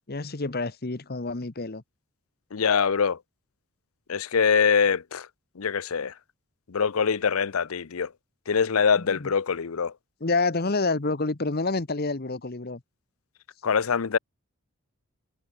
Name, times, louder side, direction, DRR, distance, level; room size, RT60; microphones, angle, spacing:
voice 1, 0.1-1.8 9.0-9.3 10.2-12.8, left 3 dB, 45° left, 1.1 m, -28 dB
voice 2, 2.5-3.2 4.1-5.3 5.6-6.1 6.7-8.1 8.5-9.9 13.6-14.2, left 6 dB, 85° left, 0.7 m, -24 dB
head